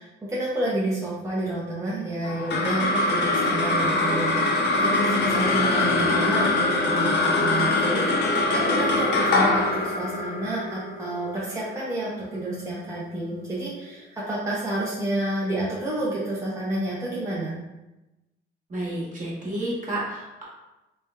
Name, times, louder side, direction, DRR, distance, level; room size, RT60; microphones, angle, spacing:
voice 1, 0.0-17.5, right 1 dB, 15° right, -7 dB, 0.6 m, -30 dB
sound 1, 2.2-12.9, left 2 dB, 60° left, 0.6 m, -23 dB
voice 2, 18.7-20.4, right 1 dB, 40° right, -6 dB, 1.1 m, -30 dB
3.1 x 2.1 x 2.2 m, 1.0 s
cardioid pair, 90°, 20 cm